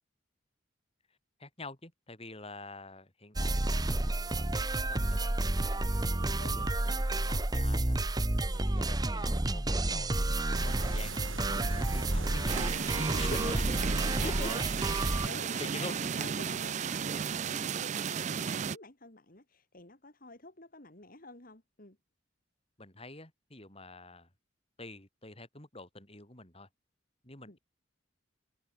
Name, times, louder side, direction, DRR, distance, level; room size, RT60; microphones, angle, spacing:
voice 1, 1.4-5.7 6.3-8.0 8.5-10.2 10.6-12.8 13.2-13.8 14.2-14.3 15.6-16.0 22.8-24.3 24.8-26.7 27.2-27.6, left 2 dB, 30° left, 5.5 m, -46 dB
sound 1, 3.4-15.3, right 2 dB, 20° right, 0.9 m, -30 dB
voice 2, 8.3-8.7 13.4-13.5 14.2-14.6 15.1-22.0 27.5-27.6, left 2 dB, 45° left, 3.0 m, -49 dB
sound 2, 10.5-17.8, right 3 dB, 80° right, 2.3 m, -45 dB
sound 3, 12.5-18.8, right 7 dB, 35° right, 0.4 m, -34 dB
open air
head